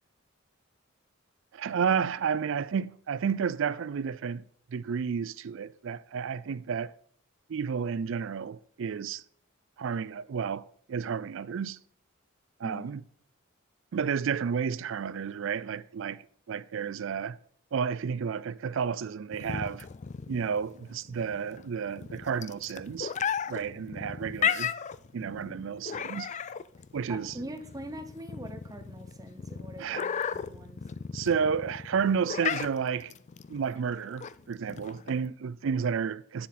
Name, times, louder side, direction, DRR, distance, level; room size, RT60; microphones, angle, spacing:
voice 1, 1.5-4.4 4.7-6.9 7.5-9.2 9.8-11.8 12.6-13.0 13.9-17.4 17.7-19.9 20.3-23.1 23.5-24.7 25.1-26.3 26.9-27.3 29.8-30.1 31.1-33.1 33.5-36.5, right 6 dB, 65° right, 0.4 m, -31 dB
sound 1, 19.3-35.3, left 7 dB, 35° left, 0.3 m, -35 dB
voice 2, 27.1-30.8, right 1 dB, 15° right, 0.8 m, -43 dB
9.6 x 7.3 x 4.2 m
head